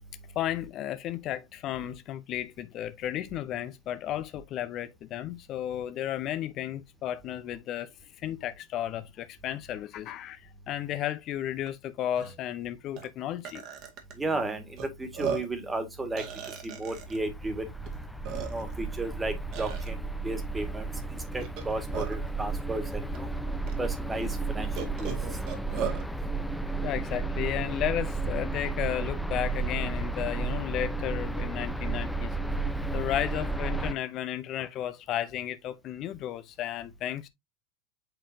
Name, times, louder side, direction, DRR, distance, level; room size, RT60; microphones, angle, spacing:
voice 1, 0.4-7.9 8.2-13.6 26.8-32.3 32.9-37.3, left 11 dB, 45° left, 0.7 m, -33 dB
Burping eructation, 11.7-11.8 12.1-12.3 13.0-13.1 13.4-14.1 14.8-14.9 15.1-15.6 16.2-17.2 17.9-18.0 18.2-18.8 19.5-19.9 21.4-22.3 23.1-23.2 23.7-23.8 24.8-26.0, right 6 dB, 50° right, 2.0 m, -36 dB
voice 2, 14.2-16.2 16.6-17.7 18.5-20.0 20.2-23.3 23.8-25.1, right 2 dB, 15° right, 2.0 m, -34 dB
sound 1, 17.0-33.9, right 3 dB, 5° left, 0.6 m, -33 dB
7.8 x 4.3 x 2.8 m
hypercardioid pair, 90°, 0 cm